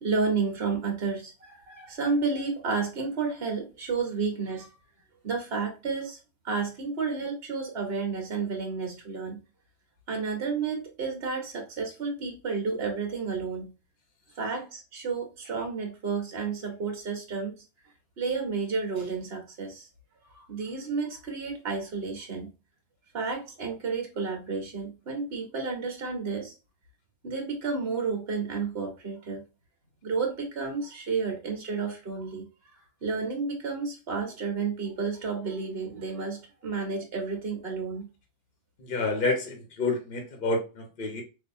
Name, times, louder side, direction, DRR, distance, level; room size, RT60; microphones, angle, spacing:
voice 1, 0.0-4.7 5.2-6.2 6.4-9.4 10.1-13.7 14.4-17.5 18.2-19.9 20.3-22.5 23.1-26.5 27.2-29.4 30.0-32.5 33.0-38.1, right 4 dB, 50° right, 2 dB, 1.5 m, -31 dB
voice 2, 38.8-41.2, left 3 dB, 45° left, 3 dB, 1.1 m, -29 dB
5.4 x 2.7 x 2.6 m, 0.29 s
omnidirectional pair, 1.3 m